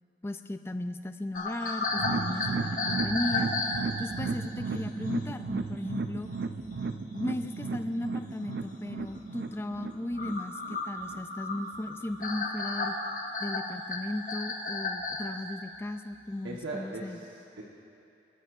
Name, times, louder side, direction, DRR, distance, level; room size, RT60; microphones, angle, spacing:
voice 1, 0.2-3.5 4.0-6.3 7.1-13.0 13.4-17.2, left 1 dB, 15° left, 9 dB, 0.3 m, -36 dB
sound 1, 1.3-4.3 5.1-5.2 5.5-5.6 6.2-6.3 6.6-7.1 7.7-7.8 8.1-8.2 9.0-9.1 9.5-15.3, left 3 dB, 45° left, 1.1 m, -33 dB
sound 2, 1.9-11.2 11.5-11.6 12.0-12.1, right 4 dB, 65° right, 0.4 m, -35 dB
voice 2, 16.4-17.6, right 2 dB, 85° right, -4 dB, 1.1 m, -39 dB
25.5 x 11.0 x 2.5 m, 2.7 s
head